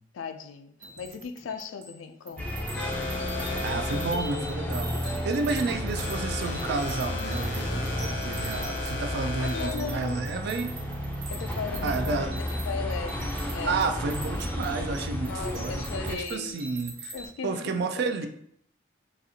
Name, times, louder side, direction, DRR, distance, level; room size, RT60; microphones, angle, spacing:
voice 1, 0.1-2.5 5.6-6.3 9.2-10.2 11.3-13.8 15.2-16.6 17.1-17.9, left 6 dB, 85° left, 8 dB, 0.4 m, -38 dB
sound 1, 0.8-2.0 2.3-17.3, right 3 dB, 90° right, 1.0 m, -43 dB
sound 2, 2.4-16.2, left 1 dB, 10° left, 0.4 m, -33 dB
sound 3, 2.8-9.9, left 3 dB, 70° left, 0.8 m, -36 dB
voice 2, 3.6-10.7 11.8-12.4 13.7-15.8 16.1-17.1 17.4-18.3, right 4 dB, 60° right, 6 dB, 0.4 m, -31 dB
4.1 x 2.4 x 2.7 m, 0.68 s
head